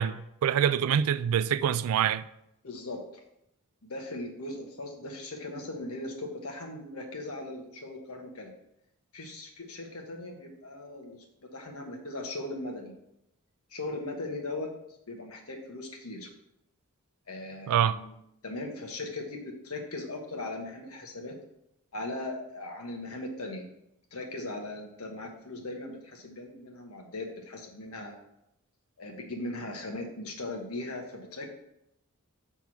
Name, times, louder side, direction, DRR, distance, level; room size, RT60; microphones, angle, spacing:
voice 1, 0.0-2.2 17.7-18.0, right 9 dB, 75° right, 0.3 m, -25 dB
voice 2, 2.6-3.0 3.8-8.5 9.1-11.2 11.5-12.9 13.7-14.7 15.1-16.3 17.3-18.1 18.4-21.3 21.9-23.6 24.1-28.2 29.0-31.5, left 2 dB, 70° left, 1.2 m, -39 dB
6.2 x 3.5 x 5.8 m
head